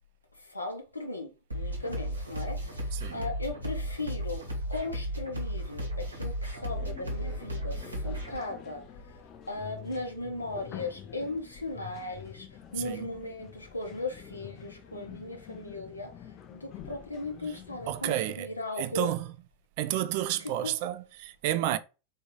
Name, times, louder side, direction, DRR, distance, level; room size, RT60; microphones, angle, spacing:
voice 1, 0.5-4.4 4.7-8.8 9.5-12.5 12.7-16.1 16.5-19.1 20.6-20.7, left 2 dB, 85° left, 0.7 m, -37 dB
sound 1, 1.5-8.4, equal, 80° right, 1.1 m, -34 dB
voice 2, 2.9-3.3 12.8-13.0 17.9-18.5 18.8-19.3 19.8-21.8, right 13 dB, 50° right, 0.3 m, -31 dB
sound 2, 6.6-18.1, left 9 dB, 35° left, 0.5 m, -47 dB
3.5 x 2.7 x 2.9 m
figure-of-eight pair, 90°, 0 cm